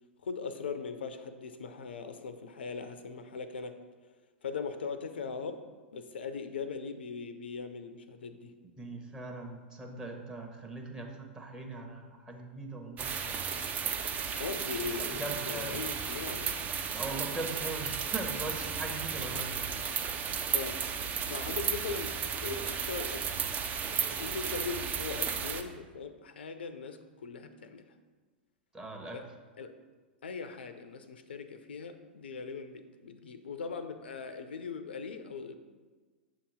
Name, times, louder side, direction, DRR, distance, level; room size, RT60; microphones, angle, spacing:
voice 1, 0.2-3.8 4.4-5.6 5.9-8.5 14.4-16.6 20.5-20.8 21.3-22.1 22.4-23.4 24.2-27.9 29.1-29.2 29.6-29.7 30.2-35.6, left 5 dB, 75° left, 9 dB, 0.4 m, -40 dB
voice 2, 8.8-13.1 15.0-15.8 16.9-19.6 28.7-29.2, right 2 dB, 10° right, 1 dB, 0.9 m, -40 dB
sound 1, 13.0-25.6, right 7 dB, 25° right, 0.4 m, -34 dB
7.0 x 2.9 x 5.4 m, 1.4 s
figure-of-eight pair, 100°, 6 cm